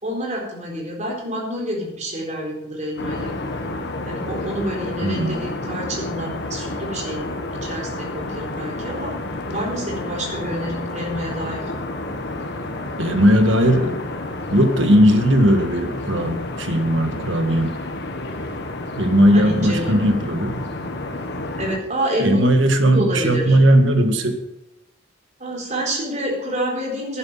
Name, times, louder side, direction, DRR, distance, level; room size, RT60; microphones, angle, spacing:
voice 1, 0.0-3.3 4.0-9.1 9.5-11.6 19.3-20.0 21.6-22.4 22.9-23.6 25.4-27.2, right 1 dB, 40° right, -1 dB, 4.0 m, -28 dB
sound 1, 3.0-21.8, left 2 dB, 60° left, 1.5 m, -30 dB
voice 2, 5.0-5.4 13.0-14.0 14.5-17.7 19.0-20.6 22.2-24.3, equal, 75° right, 7 dB, 1.7 m, -17 dB
11.0 x 10.5 x 5.6 m, 0.90 s
head